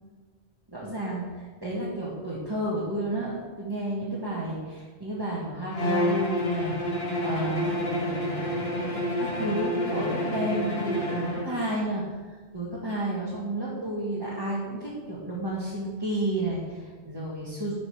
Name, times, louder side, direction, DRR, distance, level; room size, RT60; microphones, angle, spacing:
voice 1, 0.7-8.5 8.9-12.0 12.3-17.7, right 1 dB, 20° right, -7 dB, 1.7 m, -32 dB
Bowed string instrument, 5.7-11.5, left 1 dB, 70° left, 1.6 m, -28 dB
12.0 x 5.2 x 4.8 m, 1.5 s
omnidirectional pair, 1.1 m